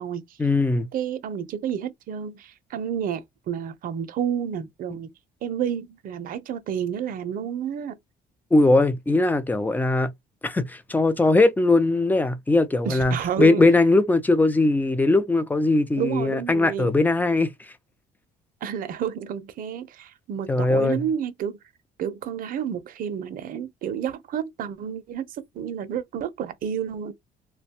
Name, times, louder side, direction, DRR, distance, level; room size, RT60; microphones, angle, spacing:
voice 1, 0.4-0.9 8.5-10.1 10.4-17.7 20.5-21.0, left 2 dB, 10° left, 0.4 m, -20 dB
voice 2, 0.9-5.1 5.4-8.0 12.8-13.6 16.0-17.0 18.6-21.6 22.0-27.1, right 8 dB, 55° right, 0.6 m, -30 dB
2.5 x 2.2 x 2.8 m
cardioid pair, 110°, 17 cm